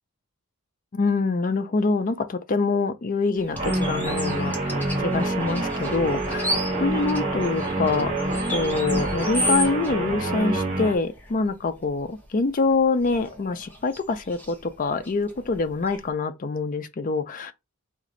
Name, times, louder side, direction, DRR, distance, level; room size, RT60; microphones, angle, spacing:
voice 1, 0.9-6.5 6.8-8.1 8.5-17.5, left 4 dB, 35° left, 0.4 m, -25 dB
sound 1, 3.4-16.1, equal, 10° left, 0.7 m, -35 dB
Guitar, 3.5-11.0, right 2 dB, 25° right, 1.8 m, -26 dB
3.7 x 2.5 x 3.0 m
head